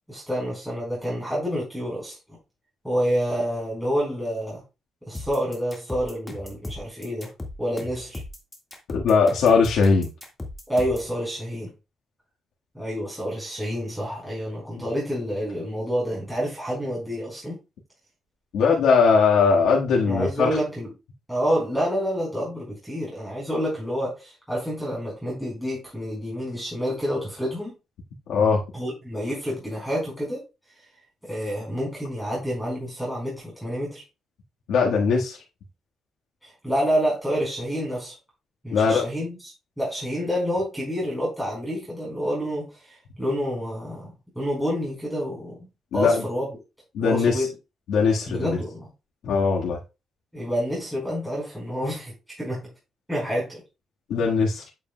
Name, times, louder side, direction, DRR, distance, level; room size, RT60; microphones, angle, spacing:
voice 1, 0.1-2.2 2.8-4.6 5.1-7.3 7.6-8.2 10.7-11.7 12.7-17.6 20.0-20.9 21.3-27.7 28.7-30.4 31.2-34.0 36.4-38.1 38.6-45.7 45.9-46.5 47.0-47.5 48.3-48.9 50.3-52.6 53.1-53.6, equal, 5° right, -5 dB, 4.5 m, -28 dB
sound 1, 5.1-11.1, left 2 dB, 15° left, 1.7 m, -37 dB
voice 2, 8.9-10.1 18.5-20.5 28.3-28.6 34.7-35.4 38.7-39.1 45.9-46.2 46.9-47.5 47.9-48.6 49.3-49.8 54.1-54.7, left 5 dB, 85° left, -3 dB, 1.6 m, -20 dB
8.2 x 7.5 x 2.3 m, 0.27 s
cardioid pair, 125°, 0 cm